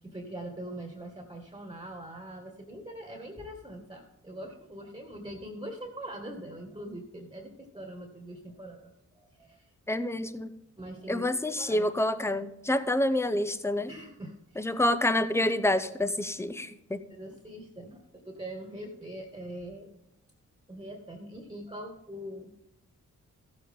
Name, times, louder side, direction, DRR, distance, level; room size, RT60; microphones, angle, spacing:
voice 1, 0.0-9.7 10.8-11.3 11.6-11.9 13.9-14.7 17.1-19.9 20.7-22.6, right 1 dB, 15° right, 3 dB, 1.8 m, -42 dB
voice 2, 9.9-10.5 11.1-13.9 14.6-17.0, left 1 dB, 10° left, 12 dB, 0.8 m, -28 dB
14.5 x 7.5 x 3.7 m, 0.88 s
cardioid pair, 55°, 32 cm